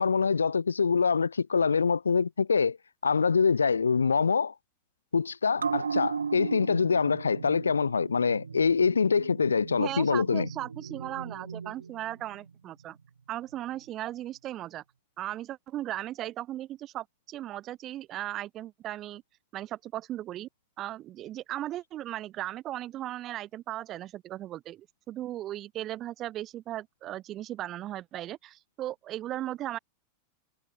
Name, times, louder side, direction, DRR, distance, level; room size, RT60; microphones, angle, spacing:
voice 1, 0.0-2.8 3.0-4.5 5.1-10.5, left 5 dB, 75° left, 0.9 m, -25 dB
sound 1, 5.6-12.5 12.8-12.9, right 6 dB, 75° right, 5.4 m, -36 dB
voice 2, 9.8-13.0 13.3-14.8 15.2-19.2 19.5-20.5 20.8-29.8, right 13 dB, 35° right, 4.1 m, -37 dB
figure-of-eight pair, 90°, 0 cm